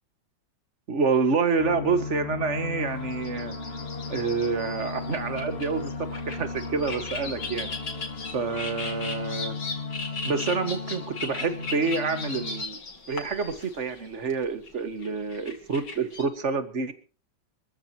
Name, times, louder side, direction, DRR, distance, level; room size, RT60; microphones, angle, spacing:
voice 1, 0.9-3.5 4.1-7.7 8.3-9.5 10.2-12.8 13.1-16.9, right 4 dB, 40° right, 10 dB, 2.0 m, -28 dB
sound 1, 1.6-12.7, left 4 dB, 35° left, 1.5 m, -36 dB
sound 2, 2.9-16.2, left 3 dB, 70° left, 3.4 m, -38 dB
26.0 x 14.5 x 3.0 m, 0.36 s
omnidirectional pair, 2.0 m